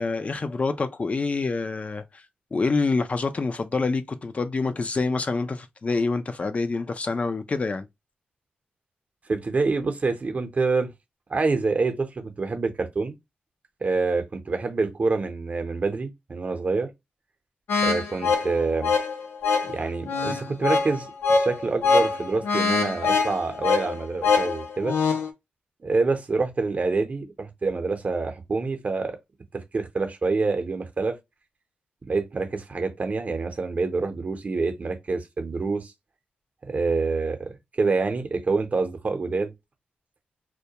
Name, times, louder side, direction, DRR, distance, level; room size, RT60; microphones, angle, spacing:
voice 1, 0.0-2.3 2.5-7.9, left 3 dB, 40° left, 0.4 m, -26 dB
voice 2, 9.3-10.9 11.3-13.1 13.8-16.9 17.8-18.9 19.6-21.1 21.4-25.0 25.8-29.2 29.5-31.2 32.1-35.9 36.6-37.5 37.8-39.5, right 3 dB, 45° right, 0.7 m, -26 dB
sound 1, 17.7-25.3, left 4 dB, 85° left, 0.6 m, -24 dB
2.2 x 2.2 x 2.8 m
cardioid pair, 65°, 4 cm